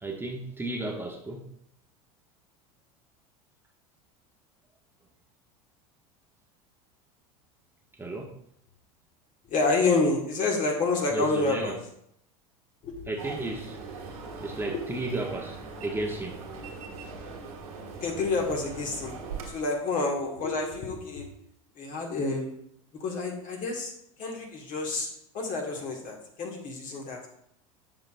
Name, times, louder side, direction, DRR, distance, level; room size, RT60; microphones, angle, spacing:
voice 1, 0.0-1.4 8.0-8.3 11.1-11.8 13.1-13.8 14.4-15.6 15.8-16.4, right 2 dB, 10° right, 1 dB, 1.0 m, -33 dB
voice 2, 9.5-11.8 12.8-13.1 14.7-14.8 18.0-19.2 19.5-21.3 21.8-22.6 23.0-23.9 24.2-25.1 25.3-27.3, left 3 dB, 45° left, 1 dB, 1.8 m, -28 dB
sound 1, 13.2-19.5, right 4 dB, 85° right, 1.7 m, -41 dB
7.5 x 5.9 x 2.5 m, 0.72 s
hypercardioid pair, 90°, 18 cm